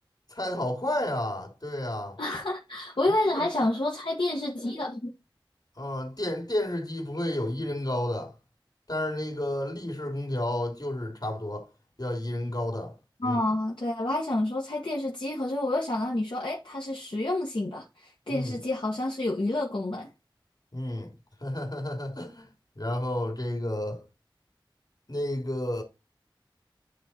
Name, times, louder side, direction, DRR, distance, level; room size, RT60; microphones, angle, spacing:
voice 1, 0.3-2.2 3.3-3.4 5.8-8.3 8.9-11.7 12.0-12.9 13.2-13.4 18.3-18.5 20.7-21.1 21.4-22.5 22.8-24.0 25.1-25.8, left 1 dB, 50° left, 3.2 m, -31 dB
voice 2, 2.2-5.1 13.2-20.1, left 1 dB, 70° left, 1.4 m, -29 dB
9.5 x 3.8 x 4.4 m
wide cardioid pair, 45°, 9 cm